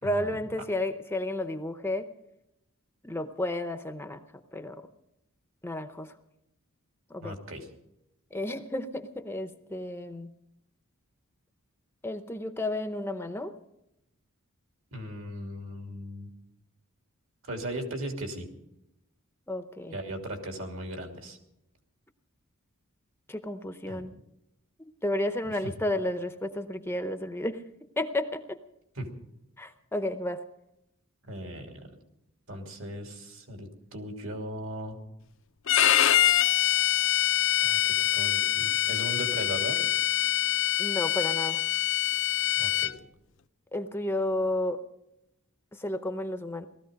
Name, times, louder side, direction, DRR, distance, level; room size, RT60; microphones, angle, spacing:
voice 1, 0.0-2.1 3.0-4.2 4.5-4.9 5.6-6.1 7.1-7.3 8.3-10.3 12.0-13.6 19.5-20.0 23.3-24.2 24.8-27.6 28.0-28.6 29.6-30.4 40.8-41.6 43.7-44.8 45.7-46.7, left 1 dB, 10° left, 8 dB, 0.7 m, -32 dB
voice 2, 7.2-7.7 14.9-16.3 17.4-18.5 19.9-21.4 23.9-24.1 25.4-25.7 29.0-29.1 31.3-32.0 32.5-35.0 37.6-39.8 42.6-43.0, right 1 dB, 65° right, 4 dB, 3.0 m, -38 dB
Bowed string instrument, 35.7-42.9, left 12 dB, 60° left, 0.6 m, -25 dB
18.5 x 14.0 x 5.2 m, 0.84 s
head